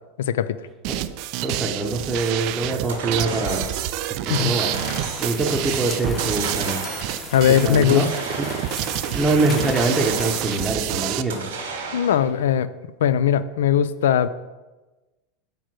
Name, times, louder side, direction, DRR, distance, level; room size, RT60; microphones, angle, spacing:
voice 1, 0.2-0.6 4.3-4.6 7.3-8.1 11.9-12.7 13.0-14.3, left 9 dB, 85° left, 15 dB, 0.3 m, -19 dB
sound 1, 0.8-11.2, right 13 dB, 55° right, 0.3 m, -28 dB
voice 2, 1.4-3.7 4.3-4.8 5.2-6.9 7.6-8.1 8.4-8.5 9.1-11.5, right 2 dB, 15° right, 0 dB, 0.7 m, -24 dB
sound 2, 2.9-3.9 4.3-5.4 6.2-7.2 7.9-8.9 9.5-10.6 11.3-12.4, right 4 dB, 85° right, 1.5 m, -34 dB
sound 3, 4.3-10.7, left 3 dB, 25° left, 0.9 m, -36 dB
5.0 x 4.6 x 6.0 m, 1.2 s
supercardioid pair, 125°, 0 cm